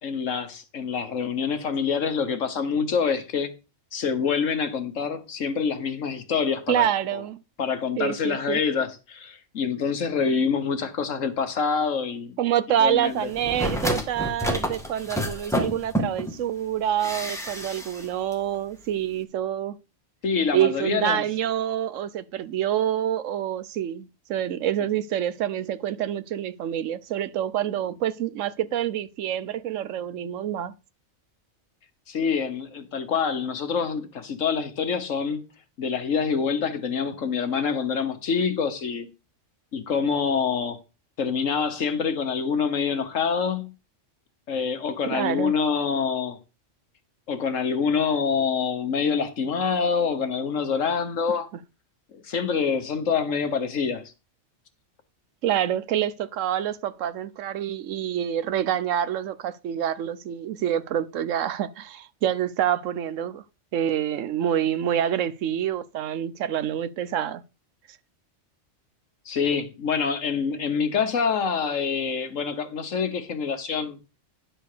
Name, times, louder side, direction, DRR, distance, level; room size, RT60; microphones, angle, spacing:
voice 1, 0.0-3.5 3.9-6.9 7.1-7.2 7.6-12.4 12.8-13.3 20.2-21.2 32.1-35.5 35.8-39.1 39.7-40.8 41.2-43.7 44.5-46.4 47.3-51.5 52.1-54.1 69.2-74.0, left 6 dB, 90° left, 1.6 m, -26 dB
voice 2, 6.7-7.4 8.0-8.6 12.4-19.8 20.5-30.7 45.1-45.5 55.4-63.4 63.7-67.4, right 10 dB, 90° right, 1.1 m, -27 dB
sound 1, 13.3-16.4 17.0-18.1 18.3-18.4, equal, ahead, 1.6 m, -29 dB
10.5 x 4.4 x 6.7 m
omnidirectional pair, 1.3 m